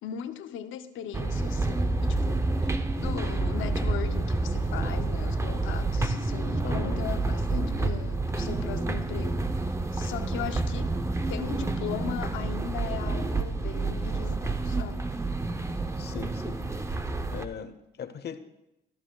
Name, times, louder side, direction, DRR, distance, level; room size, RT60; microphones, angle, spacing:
voice 1, 0.0-2.4 3.0-11.0 11.3-15.2, left 9 dB, 85° left, 0.8 m, -38 dB
sound 1, 1.1-17.4, right 2 dB, 15° right, 0.7 m, -29 dB
voice 2, 6.6-7.0 12.9-13.0 16.0-17.0 17.3-18.4, left 7 dB, 55° left, 0.9 m, -40 dB
14.0 x 13.5 x 2.4 m
cardioid pair, 90°, 20 cm